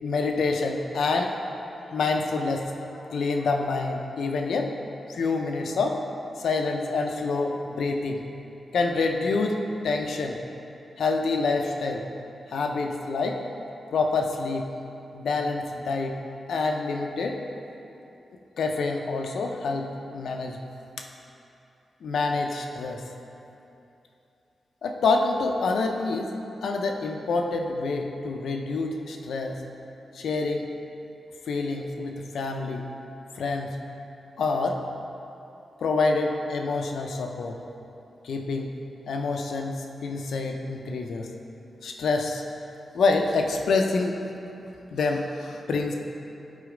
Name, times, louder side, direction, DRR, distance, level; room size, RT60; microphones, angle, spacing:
voice 1, 0.0-1.3 1.9-2.6 3.1-4.7 5.1-6.0 6.4-8.2 8.7-10.4 11.0-12.0 12.5-13.4 13.9-14.7 15.1-16.2 16.5-17.4 18.6-20.6 22.0-23.0 24.8-26.3 26.6-29.6 30.1-30.7 31.5-32.8 33.4-33.8 34.4-34.8 35.8-37.6 38.2-38.7 39.1-41.3 41.8-42.4 42.9-44.2 44.9-46.0, left 3 dB, 90° left, 3 dB, 0.5 m, -27 dB
8.3 x 4.0 x 4.9 m, 2.8 s
wide cardioid pair, 150°, 0 cm